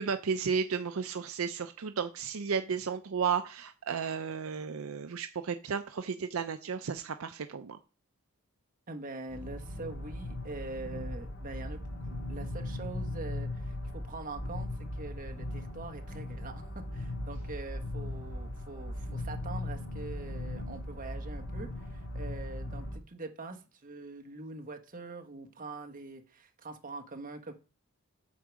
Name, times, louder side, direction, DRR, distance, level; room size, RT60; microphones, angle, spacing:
voice 1, 0.0-7.8, right 6 dB, 75° right, 9 dB, 0.5 m, -33 dB
voice 2, 8.9-16.6 16.9-27.5, right 3 dB, 40° right, 4 dB, 1.3 m, -44 dB
sound 1, 9.3-23.0, left 1 dB, 70° left, 2.1 m, -38 dB
8.5 x 4.6 x 6.2 m, 0.33 s
head